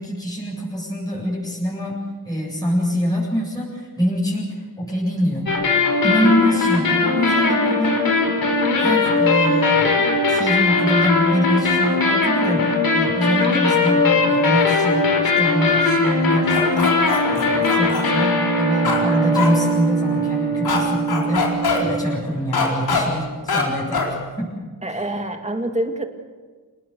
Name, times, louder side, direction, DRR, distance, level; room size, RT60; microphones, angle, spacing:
voice 1, 0.0-5.5 6.0-8.0 8.7-15.1 15.4-17.0 17.3-24.5 24.9-25.1, equal, 10° left, -6 dB, 8.0 m, -24 dB
sound 1, 5.5-22.4, left 3 dB, 70° left, 4.8 m, -20 dB
sound 2, 16.5-18.0 18.8-19.0 19.3-19.5 20.6-20.8 21.1-21.8 22.5-23.0 23.5-23.6 23.9-24.1, left 5 dB, 85° left, 4.4 m, -22 dB
voice 2, 24.8-26.1, right 1 dB, 20° right, 5 dB, 2.4 m, -26 dB
28.5 x 19.5 x 6.8 m, 1.5 s
wide cardioid pair, 100°, 37 cm